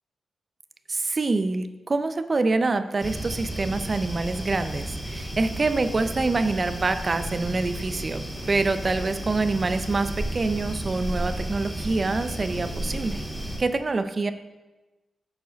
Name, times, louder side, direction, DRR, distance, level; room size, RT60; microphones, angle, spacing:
voice 1, 0.9-13.2 13.6-14.3, right 3 dB, 30° right, 11 dB, 0.4 m, -26 dB
sound 1, 3.0-13.6, right 1 dB, 5° right, 1.8 m, -33 dB
9.3 x 4.8 x 5.1 m, 1.1 s
wide cardioid pair, 150°, 0 cm